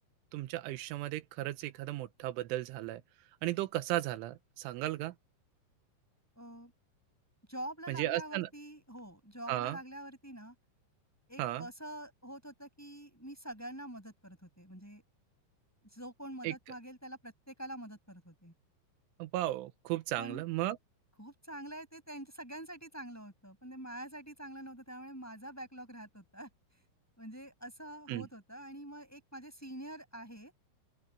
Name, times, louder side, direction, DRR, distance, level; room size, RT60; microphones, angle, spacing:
voice 1, 0.3-3.0 3.4-5.1 7.9-8.5 9.5-9.8 11.4-11.7 16.4-16.5 19.2-20.8 28.1-28.3, right 15 dB, 85° right, 3.3 m, -35 dB
voice 2, 6.3-6.7 7.5-10.5 11.3-15.0 15.9-18.5 20.2-20.4 21.2-26.8 27.2-30.5, right 1 dB, 5° left, 5.1 m, -46 dB
open air
omnidirectional pair, 5.7 m